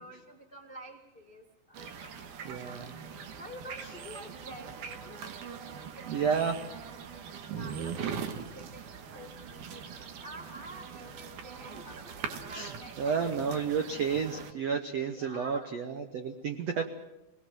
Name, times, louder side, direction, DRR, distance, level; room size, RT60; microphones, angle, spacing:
voice 1, 0.0-1.4 1.7-2.8 3.4-4.7 5.0-5.2 6.0-6.4 7.5-13.2 13.5-13.8 15.0-15.7 16.7-16.9, equal, 45° left, 3 dB, 0.6 m, -49 dB
sound 1, 1.7-14.5, right 7 dB, 65° right, 2.3 m, -41 dB
voice 2, 2.4-3.0 3.8-3.9 6.1-6.6 12.5-16.9, right 6 dB, 85° right, 6 dB, 1.4 m, -31 dB
23.5 x 19.5 x 7.7 m, 0.95 s
omnidirectional pair, 4.8 m